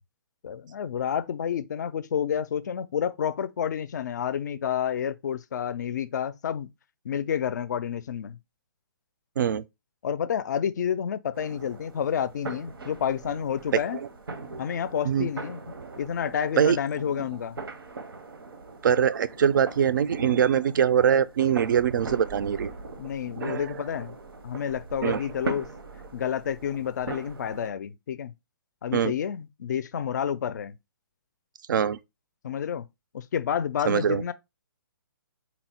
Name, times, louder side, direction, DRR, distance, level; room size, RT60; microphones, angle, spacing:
voice 1, 0.4-6.7 7.0-8.4 10.0-14.0 14.6-15.6 16.0-17.6 23.0-24.2 24.4-25.7 26.1-28.3 28.8-30.8 32.4-32.9 33.1-34.3, left 8 dB, 50° left, 0.4 m, -29 dB
sound 1, 11.3-27.7, right 3 dB, 90° right, 0.7 m, -40 dB
voice 2, 18.8-22.7 23.4-23.8 25.0-25.2 28.9-29.1 31.7-32.0 33.9-34.2, right 8 dB, 60° right, 0.4 m, -23 dB
4.0 x 2.1 x 4.2 m
hypercardioid pair, 155°, 12 cm